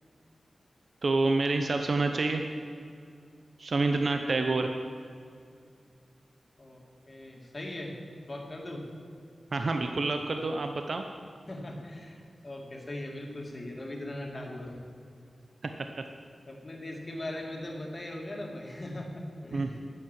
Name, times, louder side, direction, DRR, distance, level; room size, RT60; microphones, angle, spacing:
voice 1, 1.0-2.4 3.6-4.7 9.5-11.0 15.8-15.9 19.5-19.8, right 3 dB, 60° right, 5 dB, 0.8 m, -28 dB
voice 2, 7.1-7.9 8.3-8.8 11.5-14.8 16.5-19.8, left 1 dB, 35° left, 0 dB, 2.4 m, -39 dB
11.0 x 7.9 x 7.5 m, 2.3 s
cardioid pair, 65°, 0 cm